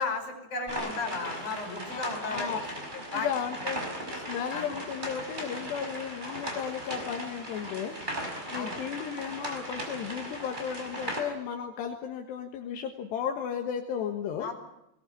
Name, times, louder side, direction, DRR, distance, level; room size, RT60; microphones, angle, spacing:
voice 1, 0.0-2.7 3.1-3.3 4.5-4.7 8.5-8.8 14.4-14.5, left 4 dB, 45° left, 5 dB, 6.5 m, -34 dB
sound 1, 0.7-11.2, equal, 10° right, 5.0 m, -38 dB
voice 2, 1.9-2.6 2.9-3.8 4.1-8.2 8.5-14.5, left 8 dB, 80° left, 3 dB, 3.6 m, -34 dB
21.5 x 21.0 x 9.3 m, 0.86 s
omnidirectional pair, 5.0 m